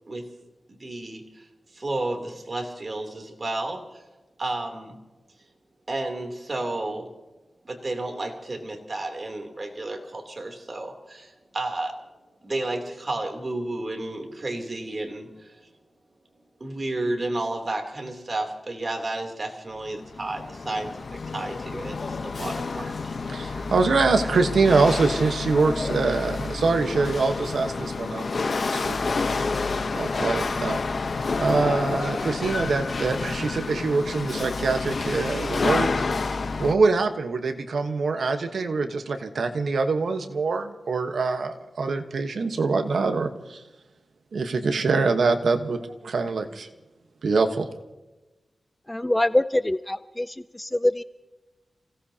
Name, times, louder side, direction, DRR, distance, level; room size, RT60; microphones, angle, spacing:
voice 1, 0.8-1.4 1.7-3.8 4.4-5.0 5.9-7.1 7.6-12.0 12.4-15.6 16.6-20.9 21.3-23.1, right 2 dB, 40° right, 3 dB, 3.2 m, -32 dB
Chatter / Hiss / Rattle, 19.9-36.8, left 4 dB, 60° left, 0.9 m, -29 dB
voice 2, 23.3-29.0 29.9-30.8 31.4-36.0 36.6-43.6 44.3-46.7 47.2-47.7, right 4 dB, 80° right, 6 dB, 1.2 m, -24 dB
voice 3, 48.9-51.0, left 1 dB, 15° left, 14 dB, 0.4 m, -24 dB
28.5 x 17.5 x 2.9 m, 1.1 s
cardioid pair, 70°, 0 cm